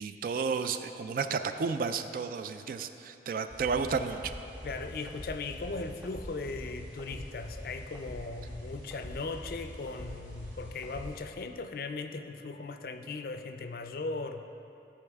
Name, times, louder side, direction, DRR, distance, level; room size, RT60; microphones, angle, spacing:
voice 1, 0.0-4.3, right 5 dB, 50° right, 9 dB, 0.3 m, -32 dB
sound 1, 3.5-11.2, equal, 10° right, 1.1 m, -44 dB
voice 2, 4.6-14.4, left 3 dB, 55° left, 8 dB, 0.4 m, -38 dB
13.0 x 4.6 x 3.5 m, 2.8 s
head